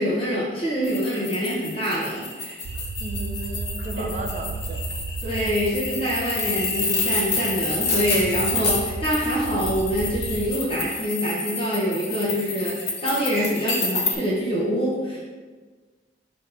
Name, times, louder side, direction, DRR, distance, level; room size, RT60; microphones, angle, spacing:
voice 1, 0.0-2.6 4.0-4.1 5.2-15.2, equal, 35° left, -6 dB, 1.2 m, -25 dB
sound 1, 0.8-14.1, left 3 dB, 65° left, 1.3 m, -29 dB
sound 2, 2.6-10.5, right 4 dB, 75° right, 0.3 m, -34 dB
voice 2, 3.0-4.8, right 2 dB, 45° right, 2 dB, 0.7 m, -34 dB
6.2 x 2.9 x 5.3 m, 1.4 s
head